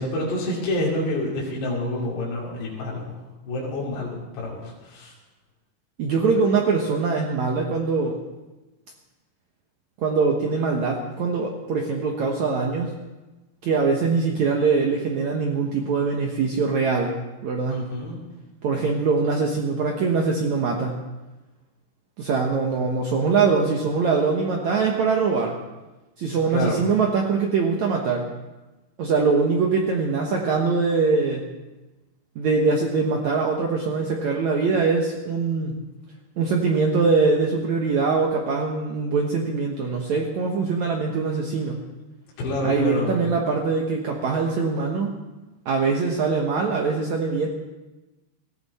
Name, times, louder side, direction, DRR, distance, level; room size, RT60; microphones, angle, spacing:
voice 1, 0.0-3.0 3.4-5.1 17.7-18.2 26.5-26.8 42.4-43.2, left 1 dB, 70° left, -6 dB, 5.1 m, -28 dB
voice 2, 6.0-8.2 10.0-12.9 13.6-17.1 17.4-17.8 18.6-21.0 22.2-25.6 26.2-28.3 29.0-31.4 32.3-35.8 36.4-41.8 42.6-45.1 45.6-47.5, right 4 dB, 90° right, 0 dB, 1.6 m, -23 dB
18.5 x 15.0 x 4.2 m, 1.1 s
omnidirectional pair, 5.1 m